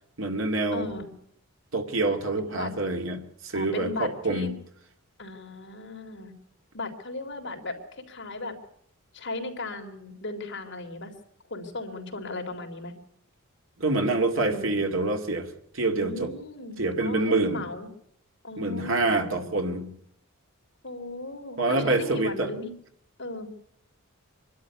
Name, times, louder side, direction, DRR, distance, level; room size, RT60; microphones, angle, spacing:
voice 1, 0.2-0.9 1.7-4.5 13.8-16.3 16.8-17.6 18.6-19.9 21.6-22.5, right 2 dB, 60° right, 4 dB, 2.3 m, -26 dB
voice 2, 0.7-1.1 2.4-2.7 3.5-4.5 5.2-6.3 6.7-8.6 9.1-11.1 11.5-12.9 14.3-14.9 16.0-17.9 18.4-19.7 20.8-22.7 23.2-23.5, left 2 dB, 55° left, 2 dB, 3.5 m, -36 dB
25.0 x 12.0 x 9.3 m, 0.70 s
head